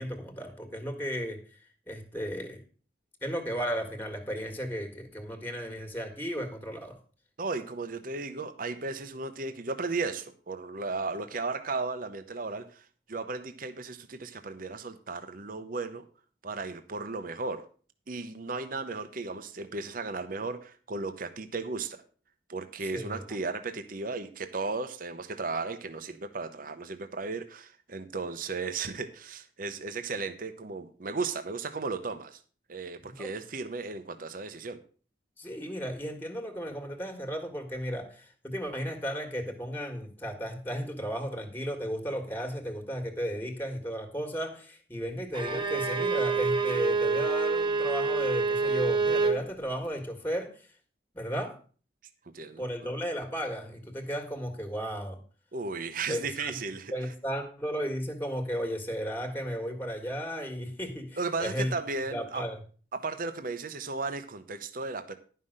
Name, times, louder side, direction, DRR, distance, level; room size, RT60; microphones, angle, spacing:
voice 1, 0.0-2.6 3.2-7.0 22.8-23.3 33.0-33.3 35.4-50.7 51.1-51.6 52.6-55.2 56.1-56.6 56.9-61.7 62.1-62.6, equal, 10° left, 4 dB, 1.6 m, -34 dB
voice 2, 7.4-16.1 16.4-17.6 18.1-22.0 22.5-32.4 32.7-34.8 52.3-52.7 55.5-56.9 61.2-62.4 62.9-65.1, right 3 dB, 50° right, 8 dB, 0.8 m, -35 dB
Bowed string instrument, 45.3-49.4, right 4 dB, 25° right, 1.4 m, -27 dB
11.5 x 5.6 x 6.5 m, 0.40 s
head